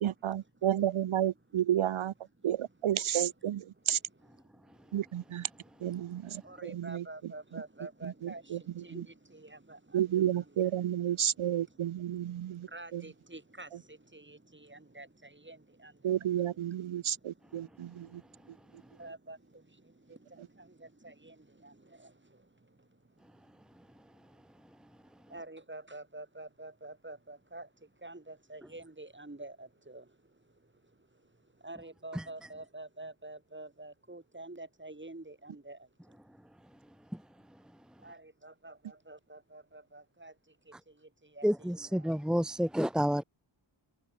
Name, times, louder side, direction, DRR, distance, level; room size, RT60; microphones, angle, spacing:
voice 1, 0.0-2.1 2.4-4.0 4.9-5.5 5.8-7.0 8.5-8.6 9.9-13.0 16.0-18.2, right 11 dB, 75° right, 0.7 m, -31 dB
voice 2, 4.4-5.5 6.0-36.2 38.0-41.7 42.0-42.2, right 2 dB, 25° right, 3.8 m, -50 dB
voice 3, 41.4-43.2, equal, ahead, 1.3 m, -29 dB
wide cardioid pair, 70°, 49 cm